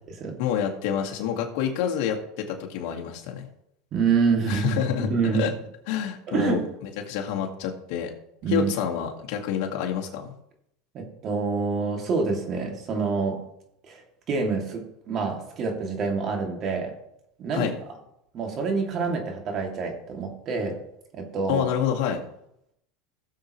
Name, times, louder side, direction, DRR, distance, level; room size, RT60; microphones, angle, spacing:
voice 1, 0.4-2.2 2.4-3.5 4.5-5.5 5.9-6.6 7.1-8.1 8.5-10.3 17.5-17.7 21.5-22.2, left 8 dB, 65° left, 1 dB, 2.0 m, -27 dB
voice 2, 3.9-5.4 6.3-6.6 8.4-8.7 10.9-13.4 13.9-14.0 14.3-16.9 17.4-17.7 18.3-20.8 21.1-21.7, right 5 dB, 40° right, 2 dB, 2.6 m, -26 dB
16.5 x 7.3 x 3.2 m, 0.79 s
supercardioid pair, 115°, 0 cm